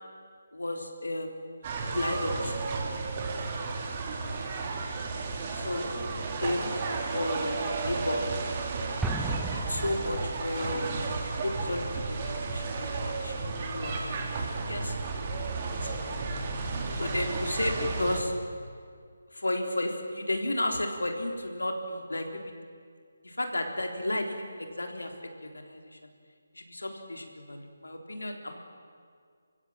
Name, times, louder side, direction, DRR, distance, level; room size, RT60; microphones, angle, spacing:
voice 1, 0.5-2.7 4.7-4.8 5.5-6.2 6.4-6.8 7.1-8.3 9.5-11.0 11.4-15.0 15.8-16.1 16.9-18.3 19.3-22.5 23.2-26.1 26.5-28.6, left 1 dB, 80° left, 3 dB, 3.6 m, -33 dB
sound 1, 1.6-18.2, right 3 dB, 35° right, 3.2 m, -33 dB
Explosion, 9.0-10.7, right 3 dB, 5° right, 0.9 m, -35 dB
28.0 x 16.0 x 8.8 m, 2.1 s
figure-of-eight pair, 150°, 0 cm